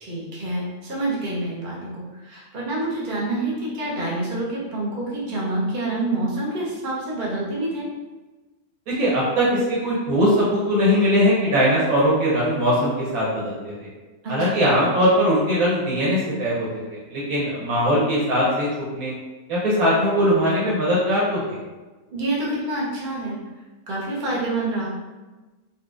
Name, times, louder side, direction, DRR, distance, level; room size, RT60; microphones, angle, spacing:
voice 1, 0.0-7.9 14.2-14.6 22.1-23.4 23.9-24.8, right 2 dB, 40° right, -6 dB, 0.9 m, -27 dB
voice 2, 8.9-13.9 14.3-18.7 18.9-19.1 19.5-21.6, equal, 85° right, -7 dB, 1.4 m, -20 dB
4.0 x 2.5 x 2.5 m, 1.2 s
omnidirectional pair, 1.5 m